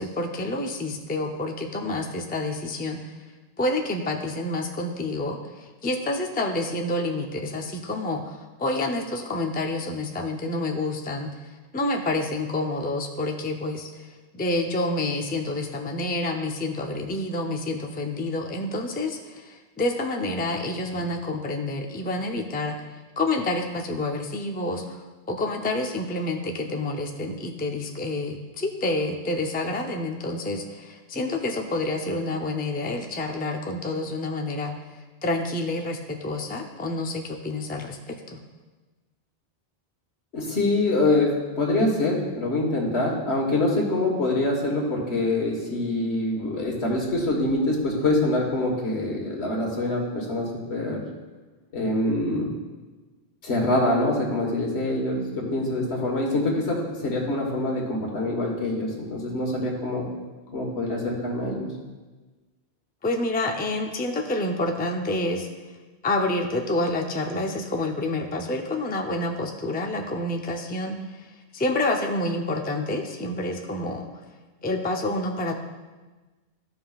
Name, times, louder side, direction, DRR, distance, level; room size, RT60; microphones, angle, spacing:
voice 1, 0.0-3.0 3.6-5.4 5.8-11.3 11.7-13.9 14.3-19.2 19.5-22.8 23.2-25.0 25.3-34.7 35.2-38.4 63.0-65.5 66.0-71.0 71.5-74.1 74.6-75.5, left 2 dB, 15° left, 2 dB, 0.4 m, -28 dB
voice 2, 40.3-51.0 51.7-52.5 53.4-60.1 60.5-61.7, left 2 dB, 85° left, -1 dB, 1.7 m, -25 dB
13.5 x 5.6 x 2.4 m, 1.2 s
omnidirectional pair, 1.1 m